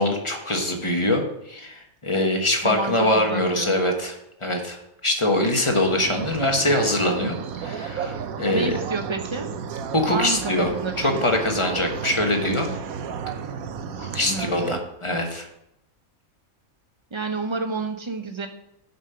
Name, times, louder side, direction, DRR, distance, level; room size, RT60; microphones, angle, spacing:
voice 1, 0.0-4.2 4.4-8.8 9.9-12.7 14.0-15.5, left 1 dB, 25° left, 3 dB, 1.1 m, -23 dB
voice 2, 2.6-3.8 8.5-9.5 10.1-11.3 14.2-14.7 17.1-18.5, right 3 dB, 30° right, 6 dB, 0.6 m, -30 dB
sound 1, 5.7-14.8, right 7 dB, 85° right, 1.1 m, -33 dB
6.9 x 5.4 x 6.7 m, 0.82 s
omnidirectional pair, 1.4 m